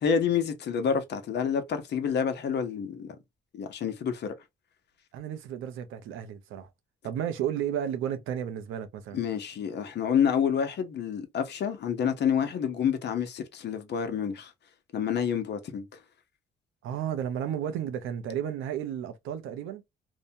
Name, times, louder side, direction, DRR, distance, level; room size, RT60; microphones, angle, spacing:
voice 1, 0.0-3.2 3.5-4.3 9.1-14.5 14.9-15.9, left 7 dB, 60° left, 0.8 m, -28 dB
voice 2, 5.1-6.7 7.0-9.2 16.8-19.8, right 9 dB, 90° right, 0.6 m, -33 dB
2.7 x 2.1 x 2.6 m
cardioid pair, 90°, 20 cm